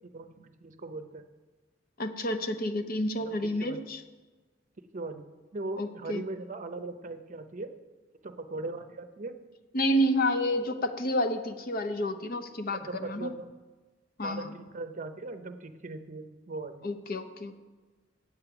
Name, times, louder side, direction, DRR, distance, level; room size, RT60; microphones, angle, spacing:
voice 1, 0.0-1.3 3.2-3.8 4.9-5.3 5.5-7.7 8.2-9.4 12.7-13.5 14.2-16.9, right 2 dB, 45° right, 9 dB, 0.7 m, -39 dB
voice 2, 2.0-4.0 5.8-6.2 9.7-13.3 14.2-14.5 16.8-17.6, equal, 50° left, 9 dB, 0.7 m, -29 dB
8.6 x 8.2 x 5.9 m, 1.3 s
head